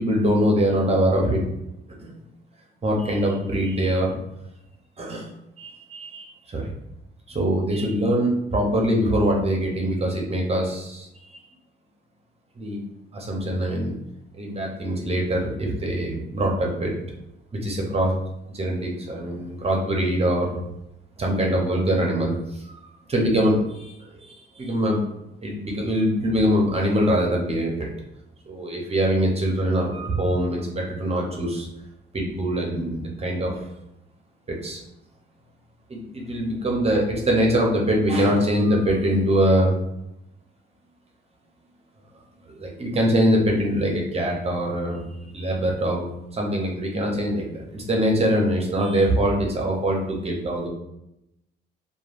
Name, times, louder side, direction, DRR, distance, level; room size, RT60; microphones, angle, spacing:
voice 1, 0.0-1.4 2.0-2.1 2.8-4.2 5.0-5.3 5.6-6.7 7.3-11.4 12.6-12.8 13.1-14.0 14.4-16.9 17.5-18.2 18.5-20.6 21.2-22.8 23.1-25.0 25.4-27.9 28.5-31.7 32.1-33.6 34.5-34.8 35.9-39.8 42.5-45.0 45.3-46.1 46.3-50.7, equal, 30° right, -1 dB, 0.7 m, -23 dB
3.1 x 2.2 x 2.5 m, 0.84 s
cardioid pair, 90°, 20 cm